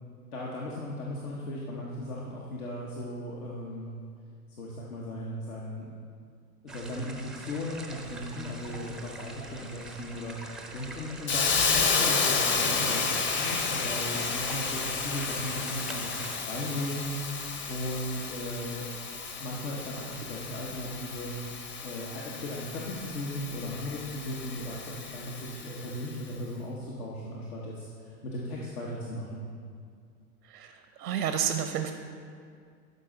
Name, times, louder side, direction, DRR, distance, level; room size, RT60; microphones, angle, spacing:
voice 1, 0.3-3.9 4.6-5.9 6.6-18.8 19.4-21.5 21.8-29.4, left 1 dB, 75° left, -4 dB, 1.3 m, -37 dB
sound 1, 6.7-16.4, right 2 dB, ahead, 0.4 m, -44 dB
Hiss, 11.3-26.1, left 5 dB, 25° left, 0.8 m, -31 dB
voice 2, 30.5-31.9, right 9 dB, 85° right, 7 dB, 0.7 m, -30 dB
12.0 x 5.3 x 3.9 m, 2.2 s
hypercardioid pair, 95°, 45 cm